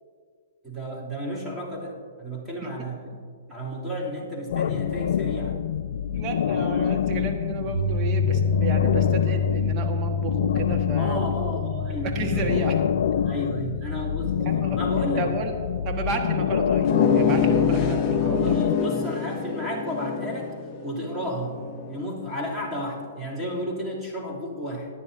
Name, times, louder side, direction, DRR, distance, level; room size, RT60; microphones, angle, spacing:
voice 1, 0.6-3.0 3.5-5.6 6.5-6.6 11.0-12.5 13.3-15.3 18.4-20.5 20.8-21.6 21.9-24.9, equal, 5° right, -7 dB, 3.1 m, -32 dB
sound 1, 4.5-18.8, left 9 dB, 70° left, 0.3 m, -26 dB
voice 2, 6.1-11.2 12.0-12.8 14.4-14.8 15.2-15.5 15.8-18.6, right 4 dB, 30° right, 3 dB, 1.5 m, -32 dB
Piano, 7.7-15.8, left 4 dB, 80° right, 2.3 m, -28 dB
sound 2, 16.8-22.1, left 6 dB, 35° left, 0.9 m, -25 dB
18.5 x 10.0 x 2.7 m, 2.1 s
hypercardioid pair, 125°, 0 cm